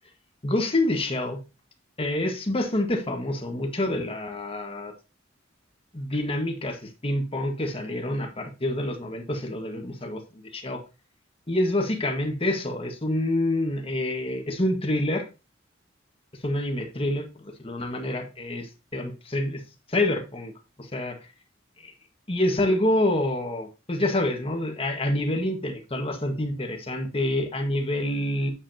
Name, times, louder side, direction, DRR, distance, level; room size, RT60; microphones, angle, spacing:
voice 1, 0.4-1.4 2.0-4.9 5.9-10.2 10.5-10.8 11.5-15.3 16.4-19.6 19.9-20.5 20.8-21.2 21.8-21.9 22.3-28.5, left 1 dB, 30° left, 1.6 m, -27 dB
8.4 x 7.9 x 2.8 m
head